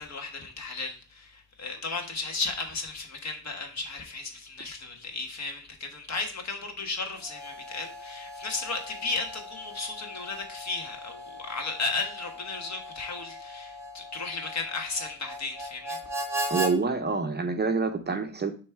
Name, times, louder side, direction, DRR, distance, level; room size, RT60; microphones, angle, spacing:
voice 1, 0.0-16.0, left 3 dB, 55° left, 1.4 m, -35 dB
Harmonica, 7.2-16.7, right 1 dB, 10° right, 1.0 m, -38 dB
voice 2, 16.5-18.5, right 4 dB, 30° right, 0.6 m, -27 dB
6.8 x 3.1 x 4.6 m
wide cardioid pair, 145°, 33 cm